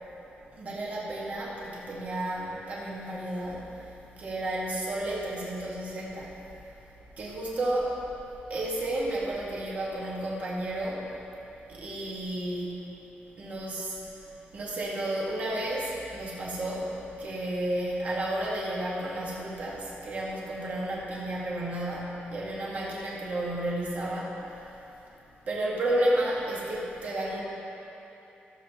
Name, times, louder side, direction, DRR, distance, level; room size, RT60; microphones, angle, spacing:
voice 1, 0.5-6.4 7.2-8.0 8.5-11.1 11.7-12.7 13.4-14.0 14.5-24.8 25.4-27.4, right 1 dB, 45° right, -5 dB, 1.9 m, -32 dB
17.0 x 7.2 x 3.1 m, 3.0 s
wide cardioid pair, 170°, 4 cm